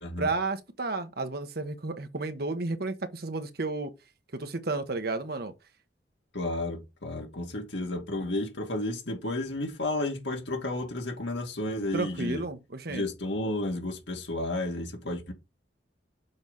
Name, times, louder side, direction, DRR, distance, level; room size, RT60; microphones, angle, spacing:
voice 1, 0.2-3.9 4.3-5.5 11.9-13.1, right 3 dB, 55° right, 1.1 m, -32 dB
voice 2, 6.3-12.4 12.9-15.3, left 1 dB, 75° left, 2.3 m, -32 dB
7.0 x 4.0 x 5.5 m
head